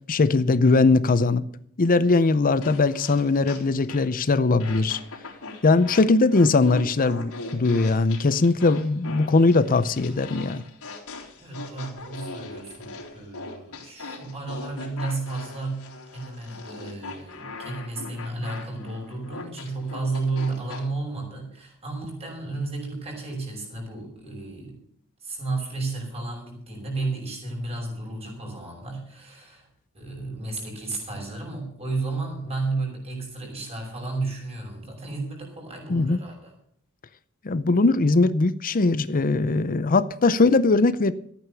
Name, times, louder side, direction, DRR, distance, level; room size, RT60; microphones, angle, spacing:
voice 1, 0.1-1.4 1.8-5.0 5.6-10.6 35.9-36.2 37.4-41.1, left 3 dB, 40° left, 0.6 m, -20 dB
sound 1, 2.6-4.2 4.6-20.8, left 3 dB, 80° left, 3.7 m, -40 dB
voice 2, 11.4-24.8 25.2-29.7 29.9-36.5, right 3 dB, 30° right, 5.9 m, -33 dB
14.5 x 9.1 x 6.9 m
head